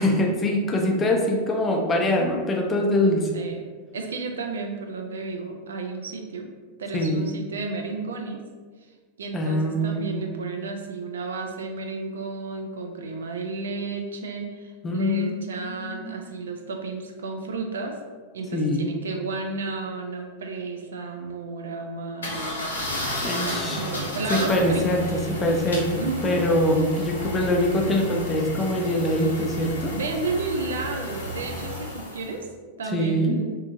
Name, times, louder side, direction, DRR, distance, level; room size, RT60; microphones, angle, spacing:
voice 1, 0.0-3.3 6.9-7.2 9.3-10.4 14.8-16.1 18.5-18.9 23.2-23.8 24.3-29.9 32.9-33.4, left 1 dB, 20° left, 1 dB, 0.4 m, -24 dB
voice 2, 3.3-3.7 3.9-6.5 6.8-8.4 9.2-18.0 18.3-22.7 23.4-25.3 26.0-26.5 29.9-32.5 32.8-33.5, right 3 dB, 65° right, 3 dB, 0.3 m, -32 dB
sound 1, 22.2-32.4, left 1 dB, 70° left, 0.6 m, -32 dB
2.6 x 2.6 x 2.4 m, 1.5 s
figure-of-eight pair, 90°, 0 cm